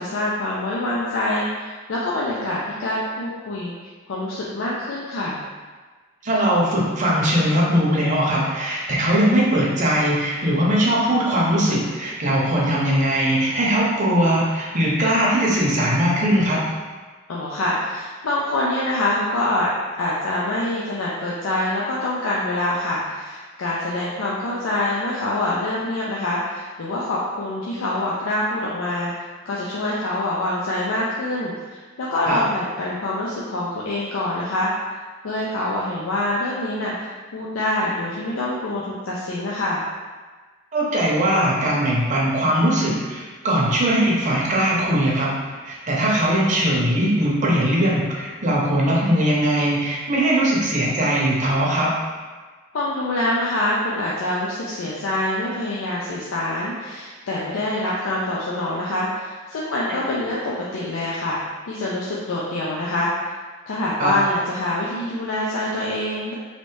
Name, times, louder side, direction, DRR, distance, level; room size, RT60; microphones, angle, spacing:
voice 1, 0.0-3.7 4.1-5.4 17.3-19.7 20.0-35.0 35.2-39.8 52.7-61.4 61.7-63.3 63.7-66.3, left 1 dB, 80° left, -5 dB, 0.5 m, -25 dB
voice 2, 6.2-16.6 32.3-32.4 40.7-45.4 45.6-51.9 59.9-60.1 64.0-64.1, right 1 dB, 40° right, -4 dB, 0.7 m, -20 dB
3.2 x 2.6 x 3.1 m, 1.4 s
head